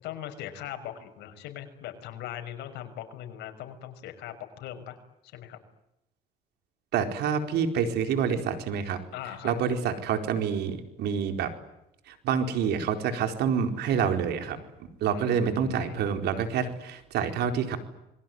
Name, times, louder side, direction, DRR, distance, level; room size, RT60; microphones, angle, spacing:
voice 1, 0.0-5.0 5.2-5.6 9.1-9.5 15.1-16.1, left 11 dB, 85° left, 6 dB, 6.0 m, -40 dB
voice 2, 6.9-9.0 9.4-11.5 12.1-14.6 15.0-17.8, right 7 dB, 75° right, 7 dB, 4.4 m, -27 dB
27.5 x 22.5 x 9.5 m, 0.88 s
cardioid pair, 110°, 17 cm